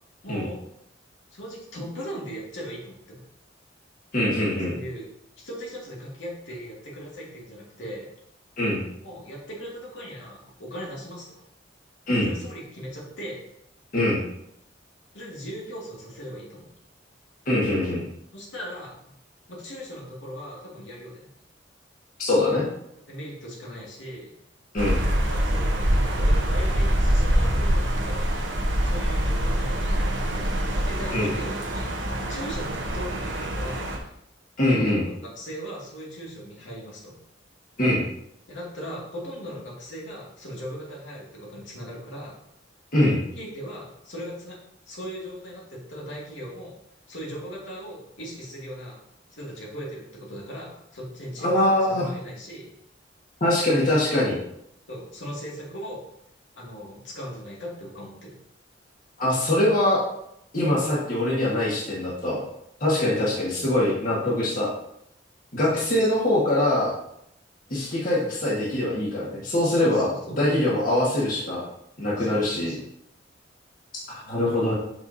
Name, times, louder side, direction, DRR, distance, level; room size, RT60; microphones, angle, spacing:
voice 1, 0.2-0.6 1.3-3.2 4.7-5.1 5.4-8.1 9.0-11.3 12.2-13.4 15.1-16.7 18.3-18.9 19.5-21.3 23.1-24.3 25.2-28.2 28.8-34.2 34.8-37.1 38.5-42.3 43.4-44.6 44.9-46.7 47.1-49.0 49.3-52.6 53.8-54.0 54.9-56.0 56.5-58.4 63.0-63.3 65.7-66.1 69.6-70.2 72.2-72.8 74.4-74.7, equal, 75° left, -4 dB, 2.2 m, -38 dB
voice 2, 4.1-4.7 8.6-8.8 12.1-12.3 13.9-14.2 17.4-18.0 22.2-22.7 24.7-25.0 31.1-31.3 34.6-35.0 37.8-38.0 42.9-43.2 51.4-52.1 53.4-54.3 59.2-60.0 60.5-62.4 62.8-64.7 65.5-66.9 67.7-70.1 70.3-71.6 72.0-72.7 74.3-74.7, left 1 dB, 45° left, -6 dB, 1.7 m, -23 dB
sound 1, 24.8-34.0, equal, 80° right, 1.1 m, -24 dB
7.9 x 5.5 x 2.8 m, 0.76 s
head